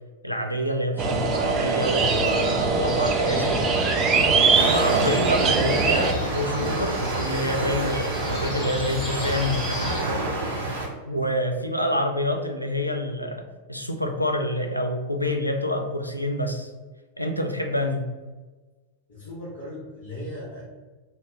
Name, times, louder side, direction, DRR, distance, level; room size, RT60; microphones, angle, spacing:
voice 1, 0.2-3.8 4.3-9.9 11.1-13.4 13.7-16.7 17.2-18.0, equal, 90° left, 4 dB, 0.3 m, -27 dB
sound 1, 1.0-6.1, right 4 dB, 30° right, 0.4 m, -22 dB
sound 2, 1.8-10.0, equal, 20° left, 1.4 m, -34 dB
sound 3, 4.5-10.9, right 2 dB, 65° right, 0.7 m, -29 dB
voice 2, 19.1-20.6, left 1 dB, 55° left, -10 dB, 1.1 m, -37 dB
2.8 x 2.2 x 3.3 m, 1.3 s
figure-of-eight pair, 90°, 0 cm